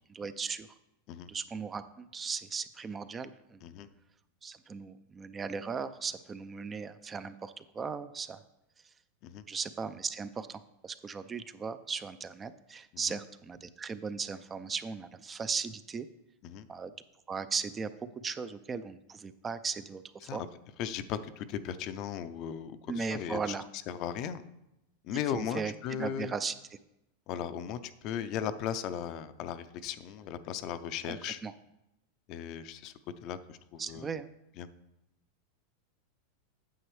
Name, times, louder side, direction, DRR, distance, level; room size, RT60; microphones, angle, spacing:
voice 1, 0.1-0.7 1.3-3.6 4.4-8.4 8.8-8.9 9.5-16.1 16.7-16.9 17.3-20.4 22.9-23.7 25.3-25.7 26.0-26.5 31.0-31.2 31.4-31.5 33.8-34.3, right 5 dB, 20° right, 13 dB, 0.4 m, -37 dB
voice 2, 20.8-23.6 23.9-24.4 25.0-26.3 27.3-31.4 32.3-32.9 33.2-34.1 34.6-34.7, left 9 dB, 45° left, 12 dB, 0.5 m, -37 dB
9.1 x 7.5 x 3.2 m, 0.89 s
supercardioid pair, 135°, 0 cm